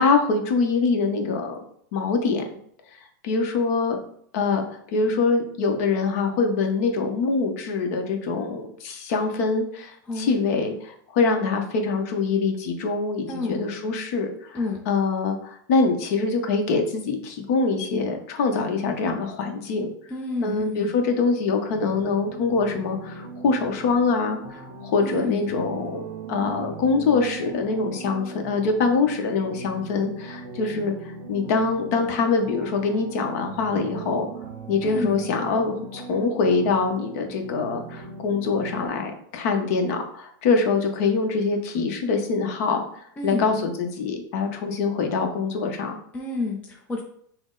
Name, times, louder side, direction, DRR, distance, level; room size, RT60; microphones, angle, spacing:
voice 1, 0.0-1.6 1.9-2.4 3.2-4.0 4.3-14.6 14.9-19.9 20.4-26.0 26.3-34.3 34.7-46.0, left 4 dB, 45° left, 4 dB, 0.8 m, -24 dB
voice 2, 10.1-10.7 13.3-13.6 14.5-14.8 20.1-21.0 25.0-25.5 34.8-35.2 43.2-43.5 46.1-47.0, left 3 dB, 10° left, -1 dB, 0.5 m, -30 dB
sound 1, 21.7-38.9, right 3 dB, 35° right, 0.7 m, -39 dB
6.0 x 2.0 x 3.8 m, 0.66 s
supercardioid pair, 165°, 11 cm